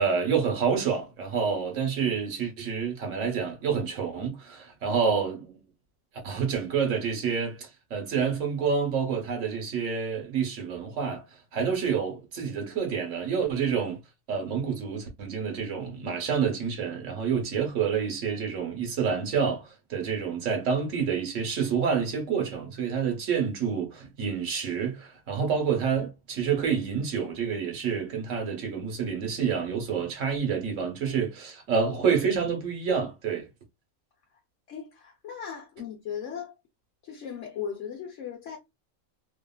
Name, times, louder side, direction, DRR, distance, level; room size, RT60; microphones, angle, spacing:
voice 1, 0.0-5.6 6.2-11.2 11.5-14.0 14.3-33.5, right 6 dB, 70° right, 1.2 m, -28 dB
voice 2, 34.7-36.5 37.0-38.6, left 8 dB, 70° left, 1.0 m, -37 dB
2.8 x 2.4 x 2.2 m
omnidirectional pair, 1.4 m